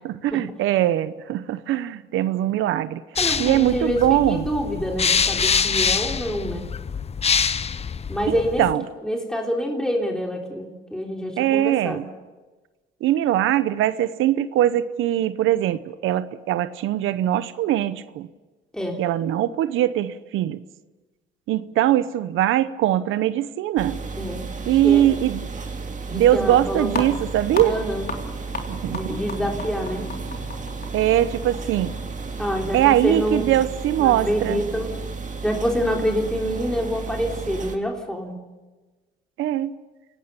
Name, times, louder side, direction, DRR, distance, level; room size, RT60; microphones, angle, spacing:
voice 1, 0.0-3.0 3.4-4.5 8.3-8.8 11.4-12.0 13.0-18.3 19.0-20.6 21.5-24.0 24.7-25.5 26.1-27.8 28.7-29.2 30.9-32.0 32.7-34.6 39.4-39.7, right 12 dB, 85° right, 14 dB, 0.9 m, -21 dB
sound 1, 3.2-8.7, left 6 dB, 30° left, 0.7 m, -25 dB
voice 2, 3.2-6.7 8.1-8.6 9.0-12.0 18.7-19.0 24.2-25.1 26.1-27.1 27.6-28.0 28.9-30.1 32.4-33.5 34.0-34.9 35.4-38.4, equal, 5° left, 0 dB, 3.5 m, -27 dB
sound 2, 23.8-37.8, right 4 dB, 40° right, 2.1 m, -33 dB
sound 3, 26.9-33.0, left 2 dB, 50° left, 3.6 m, -36 dB
28.5 x 18.0 x 6.9 m, 1.2 s
cardioid pair, 90°, 20 cm